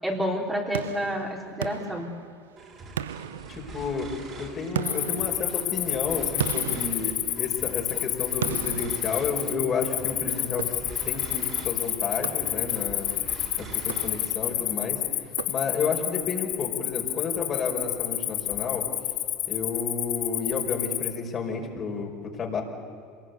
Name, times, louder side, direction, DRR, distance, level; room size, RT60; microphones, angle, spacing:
voice 1, 0.0-2.1, equal, 10° right, -1 dB, 3.8 m, -29 dB
sound 1, 0.7-2.6 3.0-4.1 4.8-7.8 8.4-9.8 10.6-11.2 12.2-12.9 13.8-14.6 15.4-16.0, right 9 dB, 85° right, 0.5 m, -36 dB
sound 2, 2.6-14.8, right 4 dB, 40° right, 5.6 m, -44 dB
voice 2, 3.5-10.8 11.0-13.1 13.6-18.9 19.5-22.6, left 5 dB, 40° left, 1 dB, 5.1 m, -31 dB
Cricket, 4.8-21.2, left 15 dB, 60° left, 1.4 m, -29 dB
26.5 x 19.5 x 8.2 m, 2.3 s
hypercardioid pair, 75°, 0 cm